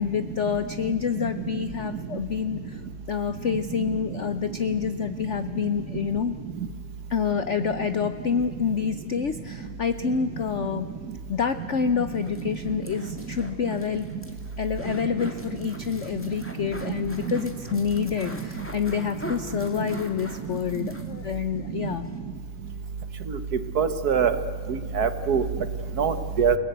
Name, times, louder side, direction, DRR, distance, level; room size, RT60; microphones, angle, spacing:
voice 1, 0.0-2.8 3.1-6.4 7.1-10.9 11.3-14.1 14.6-22.1, left 7 dB, 75° left, 11 dB, 0.6 m, -27 dB
sound 1, 12.1-21.4 21.7-21.8 22.0-22.2, equal, 5° left, 2.1 m, -43 dB
voice 2, 23.8-24.4 24.7-25.4 26.0-26.6, right 6 dB, 55° right, 11 dB, 1.4 m, -23 dB
29.5 x 18.5 x 8.1 m, 2.2 s
omnidirectional pair, 2.3 m